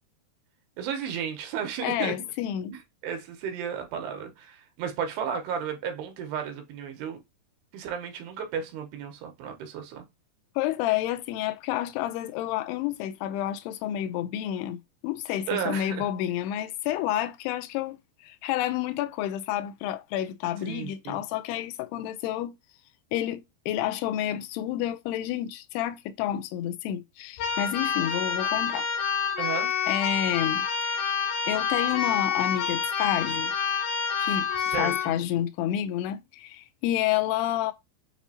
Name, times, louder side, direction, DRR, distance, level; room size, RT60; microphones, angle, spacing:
voice 1, 0.8-2.2 2.7-7.2 7.7-10.0 15.5-16.1 20.6-21.3 29.4-29.7 34.6-35.2, right 7 dB, 85° right, 3.0 m, -33 dB
voice 2, 1.8-2.7 10.6-22.5 23.1-28.9 29.9-31.0 31.5-33.5 34.2-34.5 34.8-37.7, left 12 dB, 85° left, 2.6 m, -29 dB
Keyboard (musical), 27.4-35.1, left 6 dB, 65° left, 3.1 m, -28 dB
7.2 x 2.7 x 2.7 m
omnidirectional pair, 4.6 m